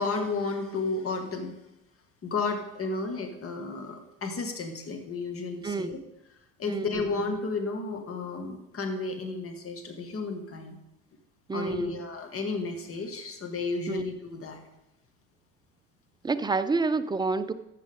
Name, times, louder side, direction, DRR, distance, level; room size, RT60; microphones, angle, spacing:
voice 1, 0.0-1.6 2.2-6.0 6.6-10.8 11.5-14.6, left 3 dB, 35° left, 4 dB, 2.2 m, -32 dB
voice 2, 6.7-7.1 11.5-12.0 13.9-14.0 16.2-17.5, right 3 dB, 10° right, 11 dB, 0.7 m, -28 dB
13.5 x 7.6 x 3.8 m, 0.91 s
hypercardioid pair, 70°, 39 cm